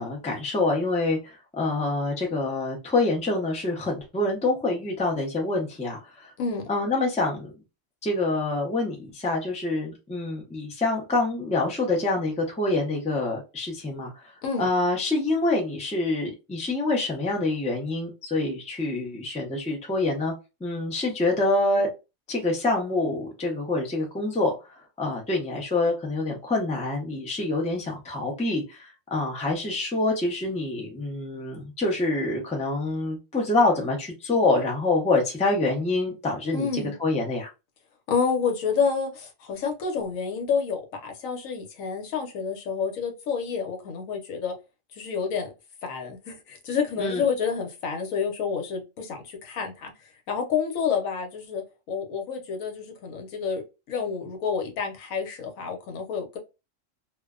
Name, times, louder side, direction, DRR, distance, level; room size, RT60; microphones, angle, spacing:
voice 1, 0.0-6.3 6.7-7.5 8.0-14.3 14.6-20.3 20.6-21.9 22.3-37.5 47.0-47.2, left 2 dB, 10° left, 0.4 m, -26 dB
voice 2, 6.4-6.7 14.4-14.7 36.5-36.9 38.1-44.5 44.9-45.5 45.8-49.9 50.3-53.6 53.9-56.4, left 6 dB, 85° left, 1.1 m, -29 dB
2.5 x 2.1 x 2.3 m
omnidirectional pair, 1.4 m